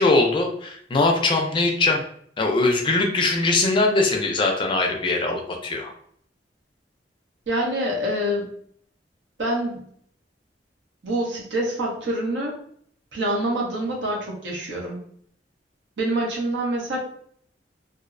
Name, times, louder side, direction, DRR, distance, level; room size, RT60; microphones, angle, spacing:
voice 1, 0.0-2.0 2.4-5.9, left 2 dB, 30° left, 2 dB, 0.4 m, -21 dB
voice 2, 7.5-8.5 9.4-9.9 11.0-12.6 13.1-15.0 16.0-17.0, right 1 dB, 85° right, -2 dB, 0.8 m, -26 dB
2.5 x 2.0 x 2.5 m, 0.62 s
head